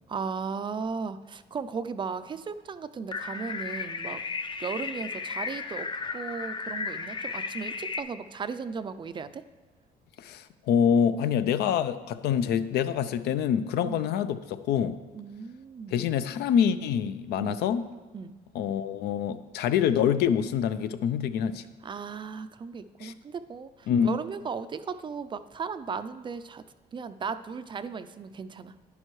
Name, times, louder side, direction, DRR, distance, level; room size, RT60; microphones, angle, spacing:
voice 1, 0.1-4.2 4.6-9.4 13.8-14.0 15.1-16.0 17.4-17.6 18.1-18.4 21.8-26.6 26.9-28.7, right 5 dB, 30° right, 12 dB, 0.4 m, -36 dB
sound 1, 3.1-8.0, left 4 dB, 30° left, 0.5 m, -34 dB
voice 2, 10.2-15.0 15.9-17.8 18.5-21.6 23.0-23.1 23.9-24.1, left 8 dB, 75° left, 13 dB, 0.5 m, -26 dB
11.0 x 9.8 x 3.1 m, 1.2 s
cardioid pair, 110°, 17 cm